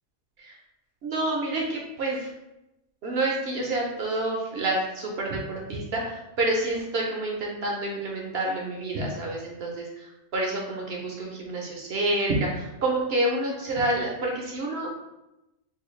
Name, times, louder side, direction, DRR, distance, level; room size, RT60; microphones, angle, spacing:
voice 1, 1.0-2.3 3.0-14.9, right 2 dB, 60° right, -1 dB, 0.7 m, -28 dB
4.0 x 2.3 x 3.0 m, 0.93 s
omnidirectional pair, 1.5 m